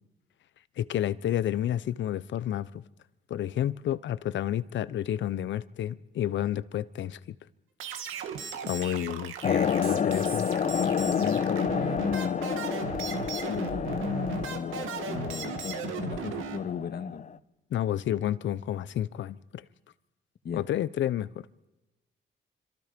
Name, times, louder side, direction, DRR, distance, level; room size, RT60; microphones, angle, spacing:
voice 1, 0.8-2.8 3.3-7.2 8.7-10.5 17.7-19.6 20.5-21.3, left 11 dB, 70° left, 1.0 m, -30 dB
sound 1, 7.8-16.6, right 7 dB, 85° right, 2.5 m, -37 dB
sound 2, 9.4-17.4, left 7 dB, 40° left, 0.8 m, -30 dB
voice 2, 10.7-12.5 13.5-17.3 20.4-20.6, left 7 dB, 55° left, 2.0 m, -35 dB
26.5 x 26.0 x 5.3 m
cardioid pair, 90°, 20 cm